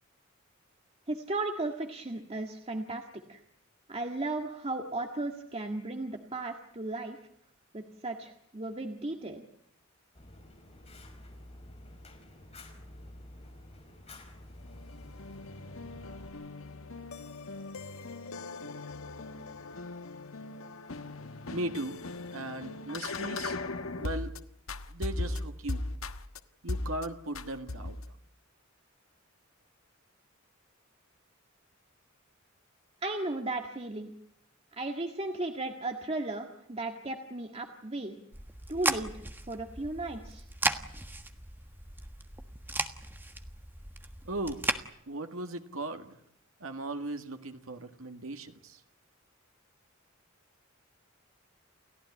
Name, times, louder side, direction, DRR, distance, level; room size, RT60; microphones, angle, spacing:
voice 1, 1.1-3.0 3.3-3.4 3.9-7.2 7.7-9.4 33.0-34.1 34.7-38.2 38.7-39.1 39.5-40.4, right 2 dB, 30° right, 4 dB, 1.8 m, -35 dB
Fire, 10.1-16.3, left 1 dB, 30° left, 5.1 m, -50 dB
sound 1, 14.6-24.4 24.7-26.4 26.7-27.1 27.3-28.1, left 2 dB, 80° left, 1.4 m, -39 dB
voice 2, 21.5-22.0 22.3-23.6 24.0-24.3 24.9-25.9 26.6-28.0 44.2-44.8 45.1-46.2 46.6-48.8, right 1 dB, 85° right, 5 dB, 1.9 m, -37 dB
sound 2, 38.3-44.8, right 2 dB, 10° right, 1.4 m, -36 dB
29.5 x 15.5 x 9.8 m, 0.74 s
head